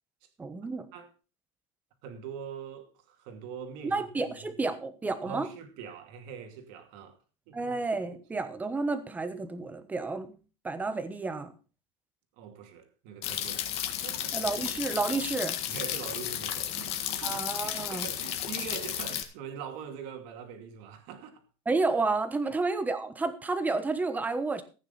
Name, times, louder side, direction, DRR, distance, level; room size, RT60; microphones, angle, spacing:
voice 1, 0.4-0.9 3.8-5.5 7.5-10.4 10.6-11.5 14.3-15.6 17.2-18.1 21.7-24.6, right 3 dB, 10° right, 1.1 m, -31 dB
voice 2, 2.0-4.1 4.4-4.6 5.2-7.2 7.5-7.8 12.4-14.7 15.7-21.4 22.4-22.5, right 7 dB, 55° right, 2.5 m, -43 dB
sound 1, 13.2-19.2, left 11 dB, 40° left, 1.6 m, -33 dB
15.0 x 9.3 x 4.0 m
supercardioid pair, 155°, 16 cm